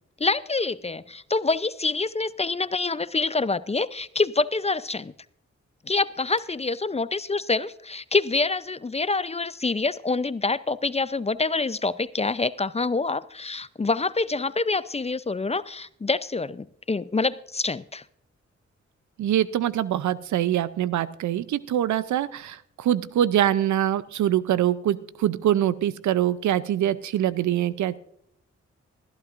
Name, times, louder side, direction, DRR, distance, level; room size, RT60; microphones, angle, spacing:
voice 1, 0.2-5.1 5.9-18.0, left 3 dB, 20° left, 17 dB, 0.5 m, -26 dB
voice 2, 19.2-28.0, right 11 dB, 80° right, 17 dB, 0.6 m, -24 dB
20.0 x 12.0 x 2.5 m, 0.70 s
supercardioid pair, 45°, 29 cm